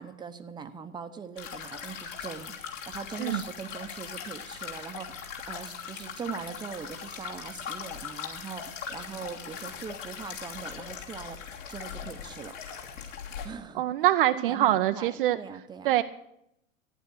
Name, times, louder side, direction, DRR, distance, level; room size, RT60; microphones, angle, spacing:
voice 1, 0.0-11.4 11.7-12.6 13.4-13.8 14.3-15.9, right 6 dB, 10° right, 9 dB, 0.8 m, -41 dB
sound 1, 1.4-13.5, left 7 dB, 65° left, 3.1 m, -40 dB
voice 2, 13.7-15.4 15.8-16.0, right 14 dB, 40° right, 10 dB, 0.6 m, -24 dB
14.5 x 10.0 x 6.5 m, 0.79 s
figure-of-eight pair, 100°, 41 cm